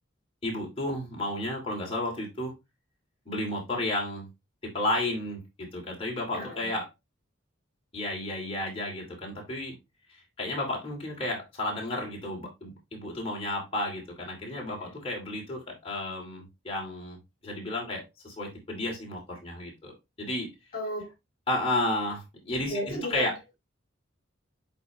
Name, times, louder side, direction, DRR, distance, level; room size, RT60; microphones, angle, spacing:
voice 1, 0.4-2.5 3.3-4.3 4.6-6.9 7.9-9.7 10.1-20.5 21.5-23.4, left 1 dB, 30° left, 2.7 m, -32 dB
voice 2, 6.3-6.7 20.7-21.1 22.7-23.5, equal, 45° left, 2.6 m, -34 dB
10.5 x 3.6 x 3.0 m
head